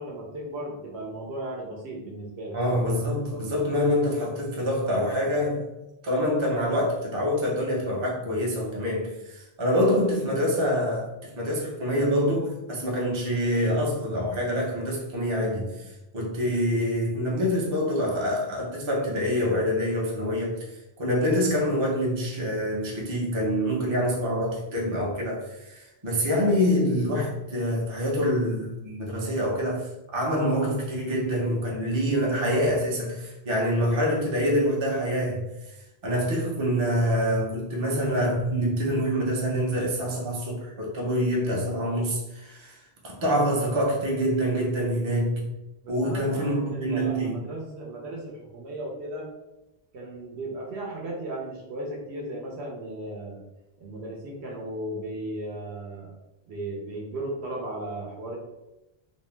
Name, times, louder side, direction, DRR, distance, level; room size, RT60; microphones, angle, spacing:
voice 1, 0.0-2.6 45.8-49.3 49.9-53.4 53.8-56.1 56.5-58.4, right 1 dB, 80° right, -1 dB, 0.9 m, -36 dB
voice 2, 2.5-5.7 6.0-11.1 11.4-35.4 35.7-35.8 36.0-45.4 45.9-47.4, equal, 35° right, -3 dB, 0.5 m, -26 dB
2.6 x 2.0 x 3.1 m, 0.95 s
omnidirectional pair, 1.1 m